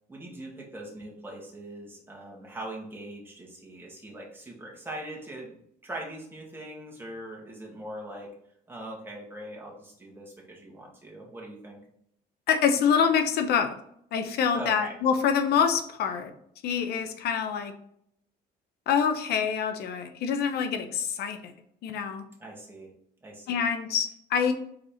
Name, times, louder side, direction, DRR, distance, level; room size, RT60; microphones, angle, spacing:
voice 1, 0.1-5.6 5.8-8.3 8.7-11.8 14.5-14.9 22.4-22.9 23.2-23.7, right 1 dB, 15° right, -2 dB, 2.1 m, -41 dB
voice 2, 12.5-13.7 14.1-16.3 16.6-17.7 18.9-21.5 21.8-22.2 23.5-24.5, left 7 dB, 70° left, 8 dB, 0.8 m, -26 dB
5.2 x 4.2 x 4.3 m, 0.70 s
cardioid pair, 110°, 17 cm